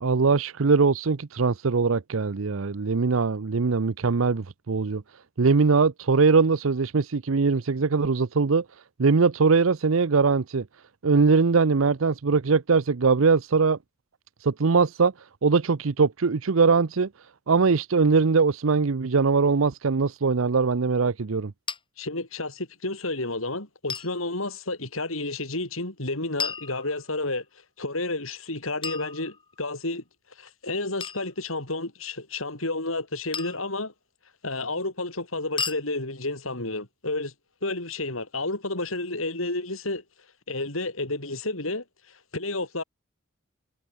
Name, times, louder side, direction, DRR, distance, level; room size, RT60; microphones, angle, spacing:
voice 1, 0.0-5.0 5.4-8.6 9.0-10.6 11.0-13.8 14.4-15.1 15.4-17.1 17.5-21.5, right 4 dB, 75° right, 0.7 m, -21 dB
sound 1, 21.7-21.8 23.9-24.1 26.4-27.3 28.8-29.7 31.0-31.3 33.3-33.7 35.6-35.8, left 6 dB, 25° left, 1.9 m, -34 dB
voice 2, 22.0-27.4 27.8-30.0 30.4-33.9 34.4-37.3 37.6-40.0 40.5-41.8 42.3-42.8, left 2 dB, 80° left, 6.4 m, -31 dB
head